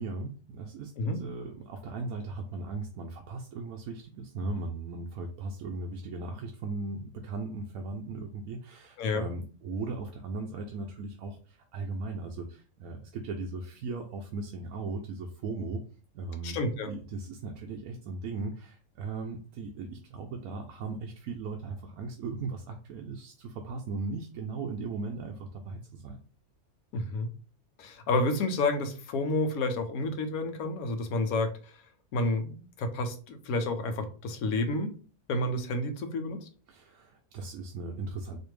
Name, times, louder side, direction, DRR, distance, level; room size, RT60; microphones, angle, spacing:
voice 1, 0.0-15.8 16.1-16.6 16.9-26.2 36.7-38.4, right 3 dB, 85° right, 3 dB, 1.1 m, -37 dB
voice 2, 16.4-16.9 26.9-27.3 27.8-31.8 32.1-34.9 35.3-36.5, left 2 dB, 85° left, 7 dB, 1.1 m, -30 dB
4.3 x 2.6 x 3.2 m, 0.38 s
omnidirectional pair, 1.5 m